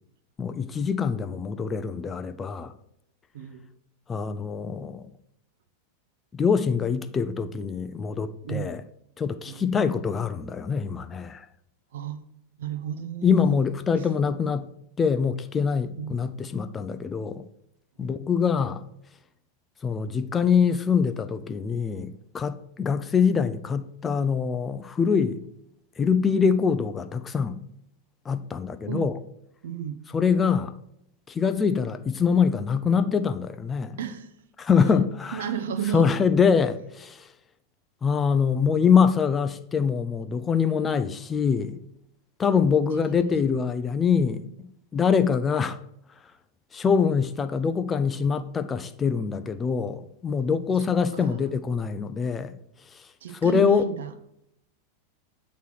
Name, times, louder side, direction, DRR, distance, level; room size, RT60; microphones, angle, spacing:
voice 1, 0.4-2.7 4.1-5.1 6.3-8.8 9.2-11.5 13.2-14.7 15.0-17.4 18.0-18.8 19.8-25.4 26.0-27.6 28.3-29.2 30.1-30.7 31.3-34.0 34.6-35.5 35.9-37.3 38.0-41.8 42.4-44.4 44.9-45.8 46.7-52.6 52.9-53.8, left 6 dB, 20° left, 0.3 m, -24 dB
voice 2, 11.9-12.2 12.6-13.6 16.0-16.1 18.0-18.1 28.9-29.1 29.6-30.0 34.0-34.3 35.3-36.1 43.0-43.3 51.1-51.3 53.2-54.1, right 9 dB, 60° right, 0.5 m, -33 dB
8.0 x 3.1 x 6.0 m
figure-of-eight pair, 90°, 0 cm